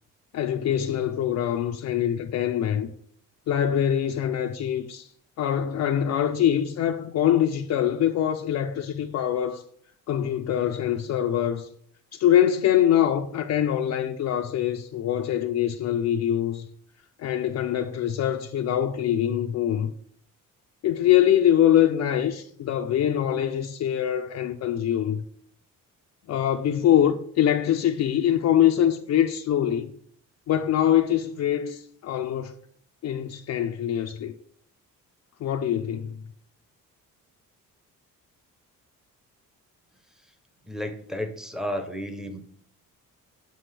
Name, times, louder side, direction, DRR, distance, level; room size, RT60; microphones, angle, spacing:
voice 1, 0.3-2.9 3.5-5.1 5.4-9.6 10.1-11.7 12.1-16.7 17.2-19.9 20.8-25.2 26.3-29.9 30.5-32.5 33.0-34.3 35.4-36.2, left 10 dB, 55° left, 0.5 m, -24 dB
voice 2, 40.7-42.4, equal, ahead, 0.8 m, -32 dB
7.6 x 5.9 x 3.3 m
cardioid pair, 145°, 33 cm